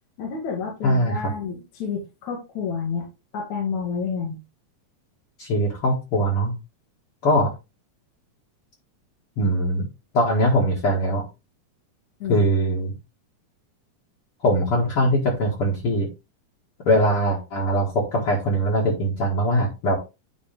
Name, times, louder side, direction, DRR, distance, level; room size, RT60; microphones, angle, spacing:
voice 1, 0.2-3.1 3.3-4.4 12.2-12.4, left 5 dB, 65° left, -1 dB, 3.1 m, -29 dB
voice 2, 0.8-1.3 5.4-6.5 7.2-7.5 9.4-9.8 10.1-11.2 12.3-12.9 14.4-16.1 16.9-20.0, equal, 45° left, -4 dB, 2.6 m, -21 dB
10.5 x 4.3 x 3.6 m, 0.26 s
omnidirectional pair, 3.7 m